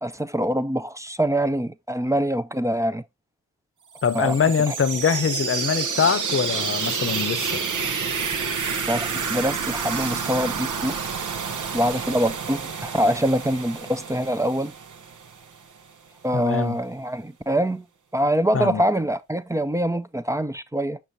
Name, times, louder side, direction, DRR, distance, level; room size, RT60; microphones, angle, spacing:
voice 1, 0.0-3.0 4.1-4.4 4.7-4.8 8.9-11.0 11.7-14.7 16.2-17.8 18.1-21.0, equal, 10° right, 0.4 m, -24 dB
sound 1, 3.9-15.6, right 5 dB, 85° right, 0.9 m, -29 dB
voice 2, 4.0-7.6 16.3-16.8 18.5-18.8, left 6 dB, 50° left, 0.7 m, -23 dB
6.7 x 6.1 x 2.7 m
wide cardioid pair, 70°, 30 cm